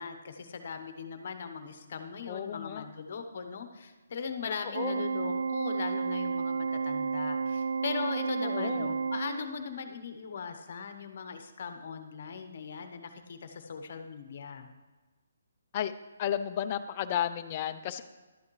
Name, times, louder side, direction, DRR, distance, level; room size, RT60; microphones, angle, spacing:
voice 1, 0.0-14.7, left 6 dB, 45° left, 7 dB, 0.9 m, -39 dB
voice 2, 2.3-2.9 4.7-5.0 8.4-8.9 15.7-15.9 16.2-18.0, left 10 dB, 25° left, 9 dB, 0.4 m, -33 dB
Organ, 4.7-9.8, right 5 dB, 60° right, 0.3 m, -32 dB
11.5 x 8.4 x 3.1 m, 1.2 s
hypercardioid pair, 170°, 0 cm